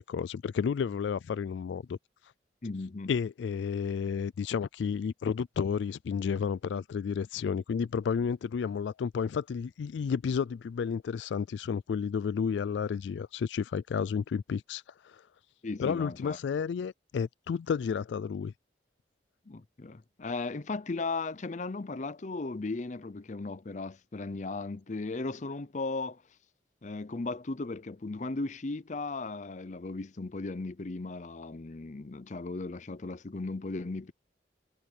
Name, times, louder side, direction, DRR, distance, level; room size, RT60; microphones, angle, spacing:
voice 1, 0.0-2.0 3.1-15.2 15.8-18.5, left 6 dB, 80° left, 0.3 m, -31 dB
voice 2, 2.6-3.1 15.6-16.4 19.5-26.2 26.8-34.1, left 3 dB, 40° left, 0.6 m, -36 dB
head